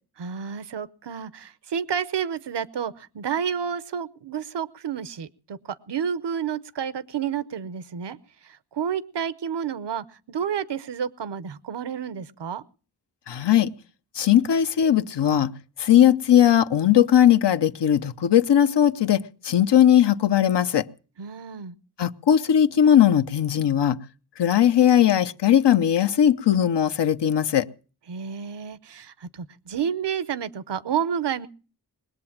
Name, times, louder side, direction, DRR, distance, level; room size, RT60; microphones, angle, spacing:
voice 1, 0.2-8.2 8.4-12.6 21.2-21.7 28.1-31.5, right 8 dB, 90° right, 0.8 m, -30 dB
voice 2, 13.3-13.7 14.1-15.5 15.8-20.9 22.0-24.0 24.4-27.7, left 10 dB, 85° left, 0.8 m, -19 dB
21.0 x 7.8 x 7.2 m
cardioid pair, 45°, 41 cm